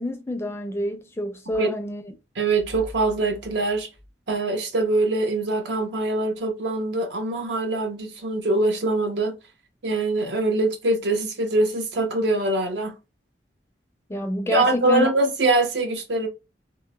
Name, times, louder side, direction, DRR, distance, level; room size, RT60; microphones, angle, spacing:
voice 1, 0.0-2.1 14.1-15.1, left 1 dB, 15° left, 0.4 m, -28 dB
voice 2, 2.4-3.9 4.3-9.4 9.8-13.0 14.5-16.3, right 2 dB, 70° right, 0.6 m, -23 dB
2.9 x 2.0 x 2.2 m
head